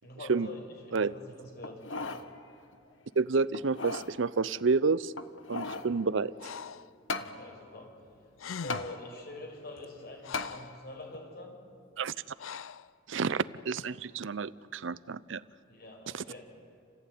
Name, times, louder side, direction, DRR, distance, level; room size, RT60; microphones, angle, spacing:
voice 1, 0.0-1.8 7.2-7.9 8.6-11.5 15.7-16.4, left 1 dB, 50° left, 1 dB, 5.9 m, -45 dB
sound 1, 1.6-2.3 2.7-2.8 3.5-4.1 5.1-5.9 7.1-7.3 8.7-8.9 10.3-10.5 11.1-11.2, left 3 dB, 70° left, 1.3 m, -36 dB
voice 2, 3.2-5.1 5.5-6.5 12.0-12.1 13.1-15.4 16.1-16.2, right 4 dB, 70° right, 18 dB, 0.6 m, -29 dB
Breathing, 6.4-6.9 8.1-8.2 8.4-9.1 9.8-10.8 12.4-12.9, left 6 dB, 85° left, 0.5 m, -42 dB
29.0 x 15.5 x 9.3 m, 2.4 s
head